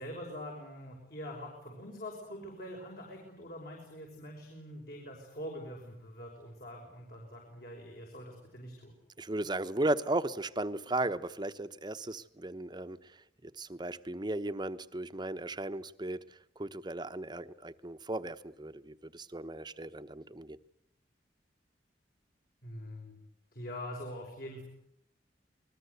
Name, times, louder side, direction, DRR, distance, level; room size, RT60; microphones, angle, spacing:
voice 1, 0.0-8.9 22.6-23.2 23.5-24.6, equal, 55° left, 5.8 m, -44 dB
voice 2, 9.2-20.6, right 2 dB, 25° right, 1.0 m, -36 dB
27.5 x 21.0 x 8.2 m
head